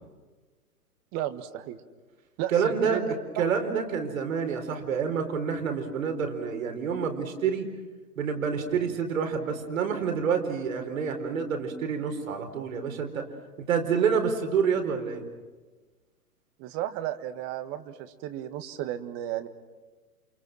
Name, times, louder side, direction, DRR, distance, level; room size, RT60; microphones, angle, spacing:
voice 1, 1.1-1.8 2.4-3.1 3.4-3.5 16.6-19.5, right 12 dB, 30° right, 11 dB, 1.6 m, -33 dB
voice 2, 2.5-7.7 8.2-13.3 13.7-15.2, right 6 dB, 60° right, 5 dB, 4.6 m, -28 dB
28.5 x 28.0 x 6.3 m, 1.3 s
figure-of-eight pair, 115°, 46 cm